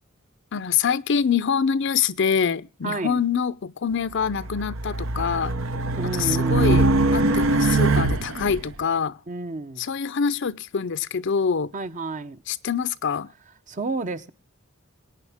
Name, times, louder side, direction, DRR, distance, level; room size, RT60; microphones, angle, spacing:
voice 1, 0.5-5.5 6.1-9.2 9.8-11.7 12.5-13.3, left 6 dB, 60° left, 0.6 m, -25 dB
voice 2, 2.8-3.2 6.0-7.0 9.3-9.9 11.7-12.4 13.7-14.3, right 2 dB, 35° right, 0.8 m, -30 dB
Race car auto racing, 4.2-8.6, right 2 dB, 70° right, 0.8 m, -22 dB
22.0 x 9.2 x 3.5 m
head